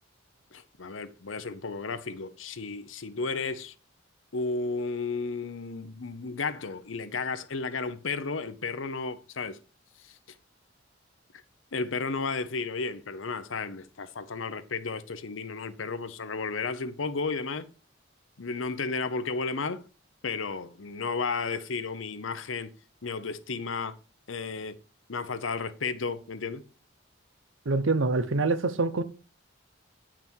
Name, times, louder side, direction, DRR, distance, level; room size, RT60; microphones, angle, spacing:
voice 1, 0.5-3.7 4.3-9.6 10.0-10.2 11.7-17.7 18.4-19.8 20.2-22.7 23.0-23.9 24.3-24.7 25.1-26.6, left 4 dB, 85° left, 0.8 m, -33 dB
voice 2, 27.7-29.0, right 3 dB, 85° right, 0.8 m, -25 dB
8.8 x 6.0 x 4.5 m
head